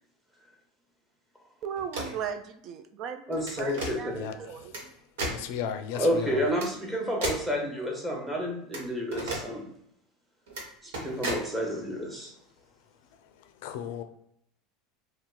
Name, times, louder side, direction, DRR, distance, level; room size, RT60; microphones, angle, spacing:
voice 1, 1.6-4.7, right 8 dB, 55° right, 0.3 m, -37 dB
sound 1, 1.8-2.2 3.3-3.9 4.7-4.8 5.2-5.4 6.6-6.7 7.2-7.5 8.7-8.8 9.1-9.4 10.5-10.6 10.9-11.4, right 2 dB, 85° right, 1.2 m, -33 dB
voice 2, 3.3-4.3 5.9-9.7 10.8-12.3, equal, 10° right, 1.1 m, -30 dB
voice 3, 3.8-4.9 5.3-6.4 13.2-14.0, left 8 dB, 75° left, 0.4 m, -37 dB
2.8 x 2.3 x 3.8 m
supercardioid pair, 110°, 0 cm